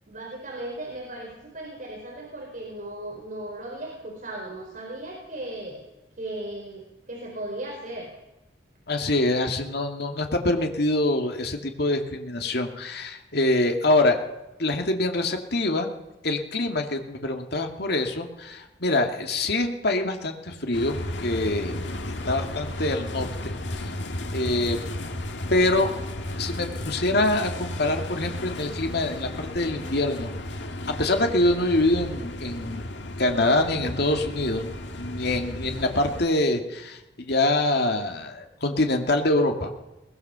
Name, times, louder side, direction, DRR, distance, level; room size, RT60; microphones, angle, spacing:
voice 1, 0.1-5.9 6.2-8.1, right 1 dB, 50° right, -1 dB, 4.4 m, -36 dB
voice 2, 8.9-14.2 14.6-15.9 16.2-20.9 21.2-21.7 22.2-23.5 24.3-24.9 25.5-25.9 26.4-30.3 31.0-32.8 33.2-34.7 34.9-39.8, left 2 dB, 65° left, 4 dB, 2.5 m, -25 dB
sound 1, 20.7-36.3, left 1 dB, 80° left, 2.0 m, -34 dB
22.0 x 20.0 x 6.9 m, 1.0 s
head